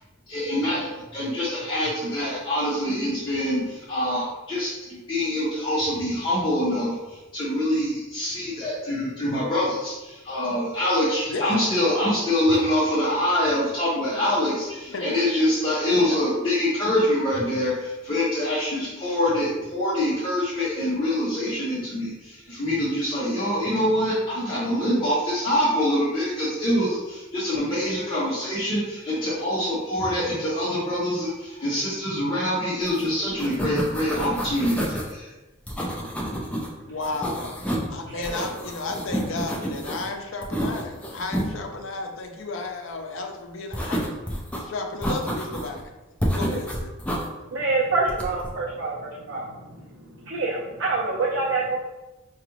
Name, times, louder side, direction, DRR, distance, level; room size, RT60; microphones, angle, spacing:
voice 1, 0.3-35.3, left 1 dB, 25° left, -10 dB, 0.8 m, -25 dB
voice 2, 11.3-11.9 14.9-15.1 36.9-45.9 46.3-46.9, left 3 dB, 70° left, 3 dB, 0.5 m, -33 dB
sound 1, 32.9-33.0 33.3-35.1 35.7-36.7 37.0-37.9 38.2-40.1 40.4-41.5 43.7-44.6 45.0-45.8 46.2-47.3 48.1-48.5, equal, 5° left, 0.4 m, -29 dB
voice 3, 47.5-51.8, right 3 dB, 70° right, -5 dB, 0.6 m, -27 dB
4.8 x 2.3 x 3.0 m, 1.1 s
head